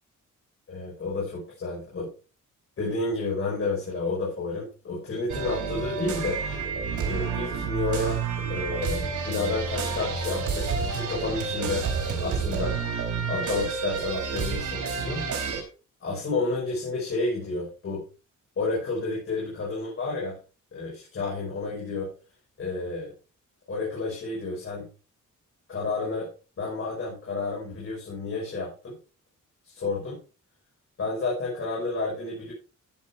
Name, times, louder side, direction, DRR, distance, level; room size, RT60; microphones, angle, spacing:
voice 1, 0.7-2.1 2.8-6.4 7.1-8.2 8.5-11.8 12.2-12.7 13.3-15.3 16.0-18.0 18.6-20.4 20.7-22.1 22.6-23.1 23.7-24.9 25.7-26.3 26.6-29.0 29.6-30.2 31.0-32.5, left 3 dB, 45° left, -5 dB, 6.0 m, -30 dB
sound 1, 5.3-15.6, right 5 dB, 70° right, 4.2 m, -29 dB
15.0 x 8.5 x 3.5 m, 0.34 s
wide cardioid pair, 170°, 31 cm